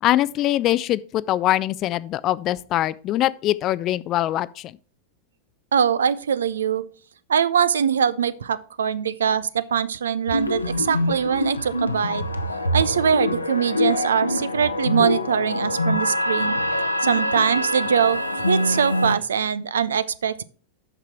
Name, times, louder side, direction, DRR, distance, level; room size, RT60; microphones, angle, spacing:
voice 1, 0.0-4.7, left 14 dB, 35° left, 0.4 m, -23 dB
voice 2, 5.7-6.8 7.3-12.2 12.7-16.6 17.0-20.4, right 7 dB, 65° right, 0.5 m, -22 dB
sound 1, 10.3-19.2, left 1 dB, 80° left, 0.8 m, -25 dB
8.5 x 6.0 x 4.6 m
figure-of-eight pair, 90°, 0 cm